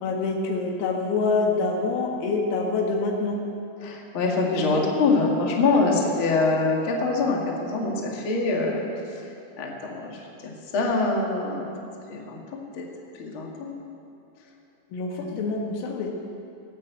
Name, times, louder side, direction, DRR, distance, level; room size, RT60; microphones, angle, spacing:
voice 1, 0.0-3.4 4.7-4.9 14.9-16.2, left 3 dB, 85° left, 1 dB, 4.4 m, -26 dB
voice 2, 3.8-8.8 9.6-10.2 10.7-12.9 13.2-13.7 15.2-15.5, left 3 dB, 65° left, -1 dB, 1.2 m, -25 dB
18.0 x 8.8 x 8.1 m, 2.7 s
omnidirectional pair, 6.0 m